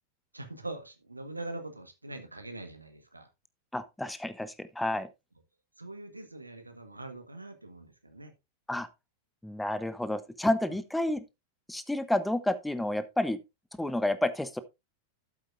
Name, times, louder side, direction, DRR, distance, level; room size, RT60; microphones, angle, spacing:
voice 1, 0.3-3.3 5.8-8.3, right 2 dB, 85° right, 1.4 m, -43 dB
voice 2, 3.7-5.1 8.7-8.9 9.4-11.2 11.7-13.4 13.7-14.6, left 1 dB, 5° left, 0.9 m, -30 dB
12.5 x 7.8 x 2.5 m
figure-of-eight pair, 90°, 0 cm